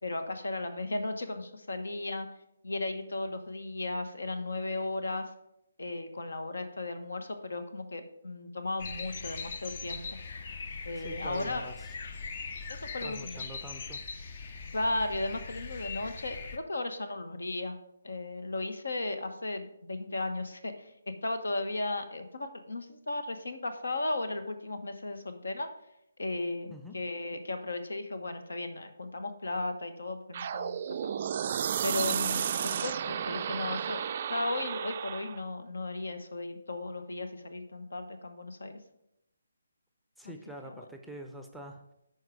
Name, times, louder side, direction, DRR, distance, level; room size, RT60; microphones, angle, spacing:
voice 1, 0.0-2.3 2.6-5.3 5.8-10.0 10.8-11.7 12.7-13.4 14.7-17.8 18.0-25.7 26.2-31.1 31.8-34.0 34.3-38.8 40.2-40.3 40.7-40.8, left 2 dB, 70° left, 8 dB, 1.0 m, -35 dB
sound 1, 8.8-16.6, left 4 dB, 45° left, 0.7 m, -41 dB
voice 2, 11.0-11.9 13.0-14.0 26.7-27.0 40.2-41.8, equal, ahead, 3 dB, 0.6 m, -45 dB
sound 2, 30.3-35.4, right 8 dB, 40° right, 0.3 m, -32 dB
10.5 x 4.5 x 4.8 m, 0.82 s
figure-of-eight pair, 145°, 0 cm